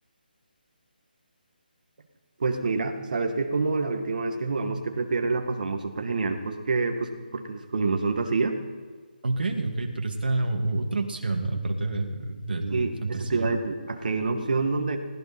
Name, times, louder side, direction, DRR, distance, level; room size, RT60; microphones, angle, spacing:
voice 1, 2.4-8.6 12.7-15.0, right 3 dB, 55° right, 5 dB, 2.0 m, -27 dB
voice 2, 9.2-13.5, right 2 dB, 70° right, 3 dB, 2.5 m, -28 dB
18.0 x 16.0 x 4.5 m, 1.6 s
hypercardioid pair, 165°, 5 cm